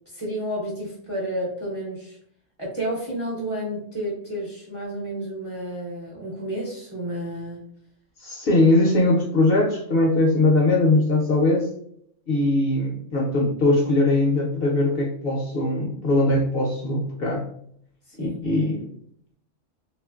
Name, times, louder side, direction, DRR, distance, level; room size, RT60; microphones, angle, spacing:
voice 1, 0.1-2.2 2.6-7.6 18.1-18.4, right 1 dB, 35° right, -6 dB, 0.6 m, -31 dB
voice 2, 8.2-11.7 12.3-17.4 18.2-18.9, left 2 dB, 60° left, -2 dB, 0.7 m, -21 dB
2.9 x 2.4 x 2.3 m, 0.68 s
omnidirectional pair, 1.3 m